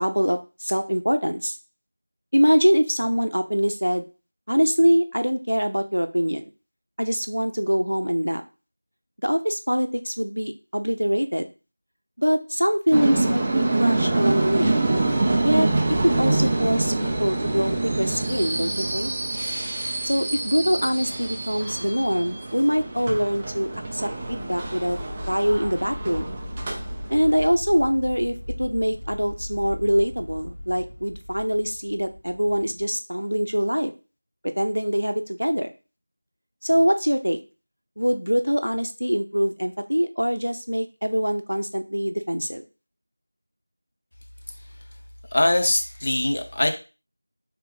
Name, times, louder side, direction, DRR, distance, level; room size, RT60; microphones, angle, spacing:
voice 1, 0.0-1.6 2.3-4.1 4.5-6.5 7.0-8.4 9.2-11.5 12.2-14.8 15.4-15.7 16.0-19.1 20.0-25.0 25.3-26.4 27.1-33.9 34.4-35.7 36.6-37.4 38.0-42.6, equal, 80° right, 8 dB, 0.6 m, -23 dB
sound 1, 12.9-27.4, right 2 dB, 15° right, 0.4 m, -26 dB
sound 2, 22.9-32.9, left 1 dB, 80° left, 1.4 m, -38 dB
voice 2, 45.3-46.7, left 1 dB, 35° left, 4 dB, 0.6 m, -22 dB
3.8 x 3.4 x 3.1 m, 0.32 s
figure-of-eight pair, 170°, 0 cm